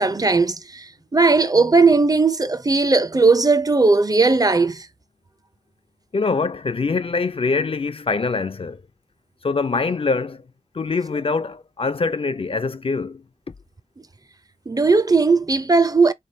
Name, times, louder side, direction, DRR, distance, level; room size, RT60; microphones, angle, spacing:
voice 1, 0.0-4.9 14.7-16.1, right 3 dB, 30° right, 0.5 m, -17 dB
voice 2, 6.1-8.8 9.4-10.4 10.7-13.2, left 4 dB, 45° left, 0.4 m, -24 dB
3.8 x 3.3 x 2.6 m
wide cardioid pair, 50°, 13 cm